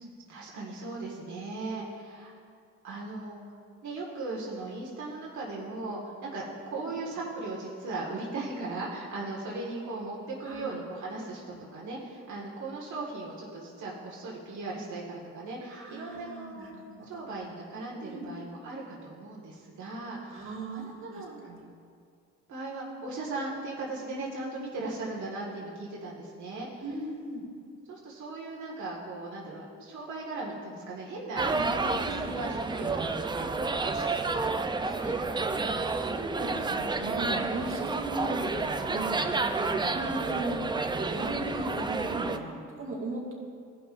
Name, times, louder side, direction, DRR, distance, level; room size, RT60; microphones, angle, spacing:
voice 1, 0.3-2.3 2.8-3.4 3.8-16.7 17.0-21.6 22.5-26.8 27.9-35.2 35.5-35.9 39.6-40.0, right 2 dB, 70° right, -4 dB, 1.7 m, -38 dB
voice 2, 15.7-17.5 18.0-18.3 20.3-21.7 26.8-27.4 31.5-32.3 36.1-39.3 39.9-40.7 41.1-43.3, right 2 dB, 45° right, -4 dB, 1.9 m, -37 dB
sound 1, 31.4-42.4, right 3 dB, 15° right, 0.4 m, -30 dB
17.0 x 5.9 x 2.5 m, 2.2 s
cardioid pair, 90°, 30 cm